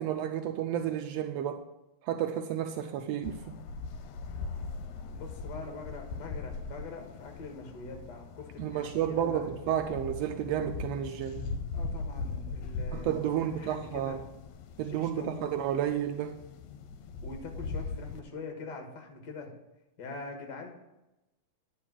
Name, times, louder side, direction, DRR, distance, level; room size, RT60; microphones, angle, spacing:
voice 1, 0.0-1.6 2.1-3.6 8.6-11.5 12.9-14.2 14.8-16.3, right 10 dB, 85° right, 5 dB, 1.5 m, -31 dB
sound 1, 3.2-18.2, left 4 dB, 80° left, 1.9 m, -40 dB
voice 2, 5.1-9.5 11.7-13.1 13.5-14.2 15.0-15.6 17.2-19.5 20.0-20.7, left 3 dB, 45° left, 3 dB, 1.7 m, -43 dB
10.0 x 4.5 x 7.3 m, 0.97 s
omnidirectional pair, 3.4 m